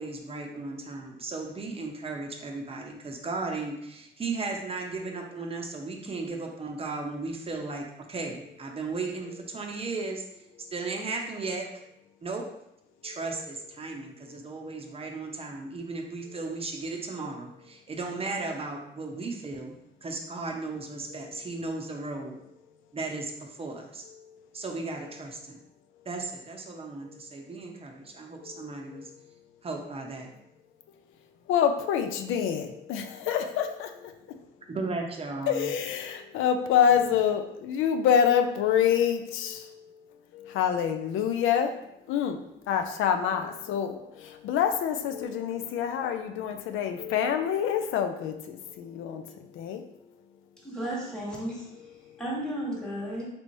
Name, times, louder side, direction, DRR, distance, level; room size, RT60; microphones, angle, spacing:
voice 1, 0.0-10.2 10.6-11.6 12.2-12.5 13.0-19.7 20.0-22.4 22.9-24.0 24.5-25.6 26.1-29.1 29.6-30.3 34.7-35.7, right 3 dB, 30° right, 1 dB, 0.6 m, -35 dB
voice 2, 31.5-33.9 35.5-39.6 40.4-41.7 42.1-42.4 42.7-43.9 44.4-48.3 48.8-49.2 49.6-49.8, left 8 dB, 85° left, 6 dB, 0.4 m, -26 dB
voice 3, 50.6-51.7 52.2-53.3, right 1 dB, 5° left, -5 dB, 1.2 m, -33 dB
3.3 x 3.0 x 2.6 m, 0.80 s
cardioid pair, 90°, 20 cm